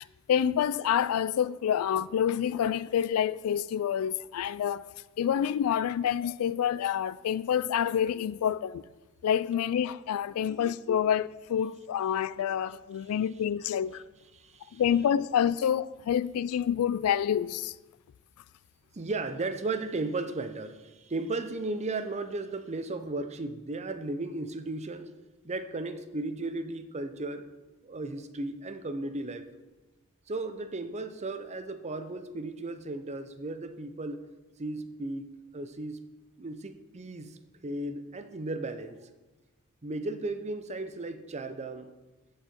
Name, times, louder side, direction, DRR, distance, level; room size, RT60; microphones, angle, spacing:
voice 1, 0.0-4.9 5.2-8.8 9.2-14.0 14.7-17.7, left 9 dB, 75° left, 0.3 m, -28 dB
voice 2, 10.4-10.7 14.3-14.8 18.9-25.1 25.4-27.5 27.8-29.4 30.3-34.3 34.6-35.3 35.5-36.0 36.4-37.4 37.6-39.0 39.8-41.9, right 2 dB, 30° right, 0.6 m, -35 dB
13.5 x 4.7 x 4.4 m
head